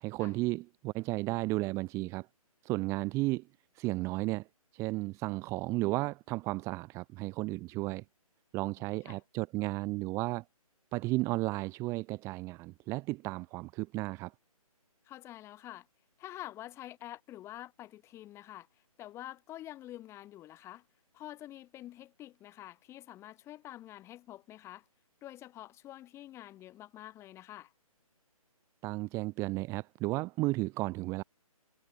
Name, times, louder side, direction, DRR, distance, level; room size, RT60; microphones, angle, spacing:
voice 1, 0.0-2.3 2.6-3.5 3.7-4.5 4.7-8.0 8.5-10.4 10.9-14.3 28.8-31.2, right 21 dB, 15° right, 1.4 m, -33 dB
voice 2, 8.9-9.2 15.0-15.9 16.2-18.7 19.0-20.8 21.1-24.9 25.2-27.7, left 14 dB, 15° left, 8.0 m, -47 dB
figure-of-eight pair, 140°, 19 cm